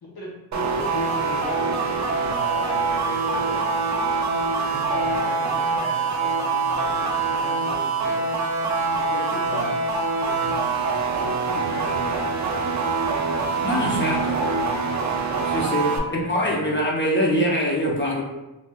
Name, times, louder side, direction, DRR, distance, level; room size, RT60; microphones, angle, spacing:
voice 1, 0.0-4.0 4.6-8.3 8.9-9.8 10.2-13.5 14.0-15.2 15.9-16.8, equal, 50° left, -3 dB, 0.9 m, -37 dB
sound 1, 0.5-16.0, right 4 dB, 40° right, 0.4 m, -24 dB
voice 2, 13.6-14.4 15.4-18.2, equal, 25° left, -3 dB, 0.6 m, -23 dB
3.3 x 2.7 x 2.2 m, 0.98 s
wide cardioid pair, 120°, 46 cm